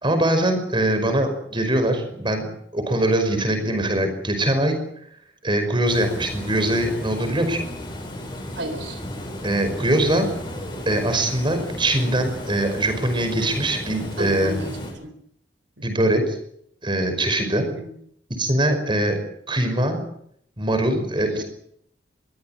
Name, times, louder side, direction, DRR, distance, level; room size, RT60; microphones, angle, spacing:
voice 1, 0.0-4.8 5.4-7.7 9.4-10.3 10.9-14.5 15.8-16.4 16.8-17.6 18.4-19.2 19.5-20.1 20.6-21.4, right 1 dB, 25° right, 7 dB, 5.5 m, -22 dB
Water, 5.9-14.9, left 1 dB, 25° left, 7.9 m, -34 dB
voice 2, 8.6-9.0 14.2-15.1 15.8-15.9 17.6-17.9 21.2-21.4, right 1 dB, 70° right, 10 dB, 4.1 m, -34 dB
23.0 x 16.5 x 9.0 m, 0.70 s
head